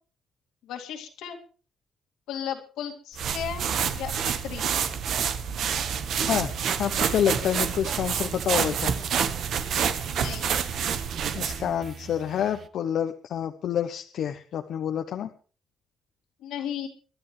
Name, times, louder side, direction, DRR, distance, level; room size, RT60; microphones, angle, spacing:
voice 1, 0.6-1.4 2.3-4.7 10.1-10.6 16.4-16.9, left 9 dB, 90° left, 3 dB, 2.5 m, -35 dB
sound 1, 3.2-11.7, right 7 dB, 70° right, 1.4 m, -28 dB
sound 2, 5.7-12.7, right 5 dB, 50° right, 1.1 m, -42 dB
voice 2, 6.8-8.9 11.3-15.3, left 9 dB, 70° left, 6 dB, 0.9 m, -28 dB
24.5 x 11.0 x 3.3 m, 0.38 s
cardioid pair, 90°, 0 cm